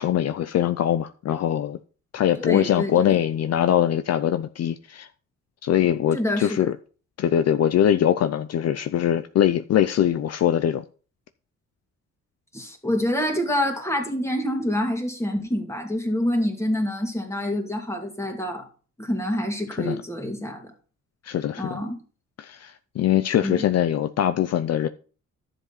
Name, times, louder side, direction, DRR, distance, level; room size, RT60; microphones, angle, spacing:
voice 1, 0.0-1.8 2.1-5.1 5.6-6.8 7.2-10.8 19.7-20.0 21.2-21.8 22.4-24.9, left 10 dB, 60° left, 0.6 m, -22 dB
voice 2, 2.4-3.2 6.1-6.7 12.5-18.6 19.0-20.7 21.6-22.0 23.4-23.6, left 1 dB, 10° left, 2.4 m, -27 dB
11.0 x 7.4 x 4.1 m
cardioid pair, 110°, 29 cm